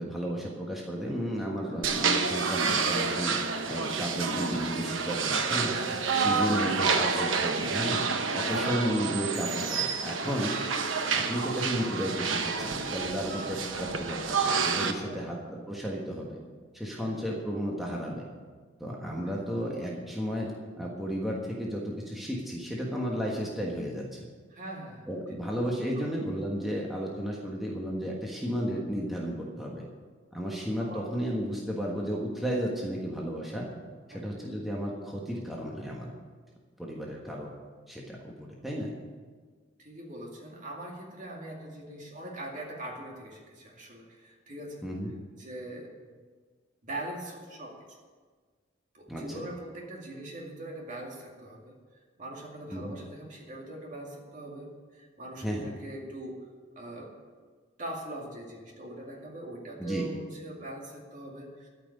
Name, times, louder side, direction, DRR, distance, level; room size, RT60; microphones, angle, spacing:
voice 1, 0.0-3.3 3.6-5.8 6.1-8.0 8.3-10.5 11.1-16.4 16.7-18.2 18.8-24.2 25.1-29.8 30.3-33.7 34.1-36.1 36.8-37.5 37.9-38.9 44.8-45.1 49.1-49.4 52.7-52.9 55.4-55.7 59.8-60.0, equal, ahead, -3 dB, 1.4 m, -33 dB
sound 1, 1.8-14.9, right 5 dB, 85° right, 1.0 m, -29 dB
voice 2, 24.5-25.1 25.8-26.3 30.8-31.1 34.1-34.2 39.8-44.8 45.3-46.2 46.8-48.0 48.9-51.8 52.2-56.5 56.8-57.1 57.8-61.7, right 1 dB, 40° right, -1 dB, 2.3 m, -42 dB
13.0 x 6.0 x 9.6 m, 1.5 s
head